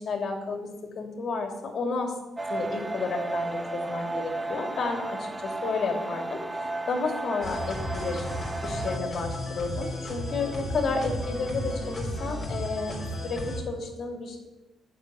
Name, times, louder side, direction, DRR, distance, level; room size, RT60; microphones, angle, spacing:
voice 1, 0.0-2.1 2.5-6.4 6.9-8.3 8.6-14.5, left 4 dB, 50° left, 3 dB, 3.2 m, -31 dB
sound 1, 2.4-9.0, right 2 dB, 10° right, 0.8 m, -33 dB
sound 2, 7.4-13.6, left 1 dB, 25° left, 3.7 m, -34 dB
11.0 x 7.0 x 9.5 m, 1.0 s
cardioid pair, 90°, 0 cm